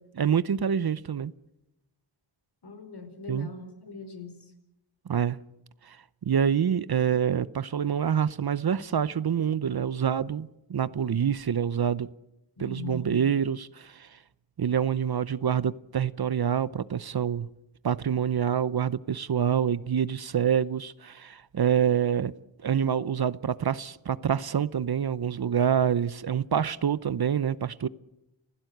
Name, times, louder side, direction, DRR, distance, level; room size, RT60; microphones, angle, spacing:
voice 1, 0.2-1.3 3.3-3.5 5.1-5.4 5.9-6.0 6.2-12.1 12.6-14.1 14.6-17.5 17.8-22.3 22.6-27.9, right 8 dB, 55° right, 17 dB, 0.8 m, -26 dB
voice 2, 2.6-4.4 12.6-13.2, left 3 dB, 55° left, 8 dB, 4.9 m, -40 dB
29.0 x 16.0 x 8.0 m, 0.91 s
wide cardioid pair, 75°, 46 cm